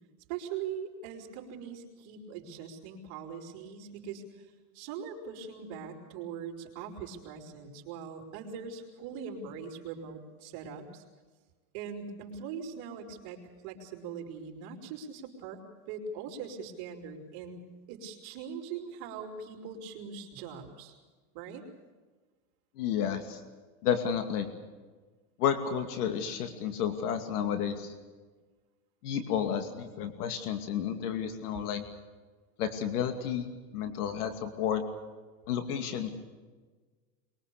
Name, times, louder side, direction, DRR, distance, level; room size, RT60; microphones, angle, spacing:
voice 1, 0.3-4.5 4.7-11.0 11.7-17.6 17.9-20.9 21.3-21.6, right 6 dB, 55° right, 1 dB, 4.7 m, -41 dB
voice 2, 22.8-23.4 23.8-24.5 25.4-27.9 29.0-31.8 32.6-34.8 35.5-36.2, left 8 dB, 85° left, 7 dB, 2.6 m, -31 dB
23.5 x 22.5 x 6.7 m, 1.4 s
supercardioid pair, 145°, 44 cm